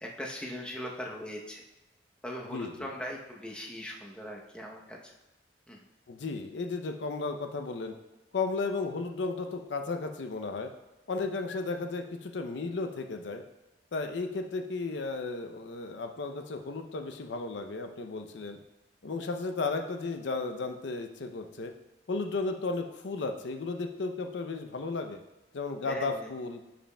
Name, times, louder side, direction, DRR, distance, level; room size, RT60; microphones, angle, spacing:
voice 1, 0.0-1.6 2.2-5.1 5.7-5.8 25.8-26.3, equal, 5° left, -1 dB, 0.8 m, -40 dB
voice 2, 2.5-2.9 6.1-7.9 8.3-10.7 11.1-13.4 13.9-18.6 19.0-21.7 22.1-25.2 25.5-26.6, left 3 dB, 75° left, 6 dB, 0.5 m, -34 dB
10.0 x 5.1 x 2.2 m, 1.0 s
head